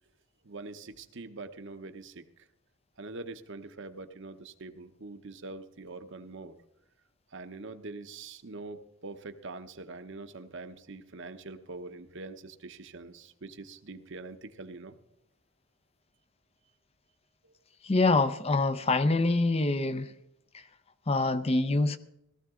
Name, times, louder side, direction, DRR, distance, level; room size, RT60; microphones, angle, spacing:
voice 1, 0.4-2.4 3.0-6.6 7.3-15.0 17.4-17.5, right 3 dB, 55° right, 9 dB, 0.9 m, -44 dB
voice 2, 17.8-20.1 20.5-20.6 21.1-22.0, left 3 dB, 25° left, 12 dB, 0.5 m, -25 dB
17.5 x 13.5 x 3.7 m, 0.78 s
head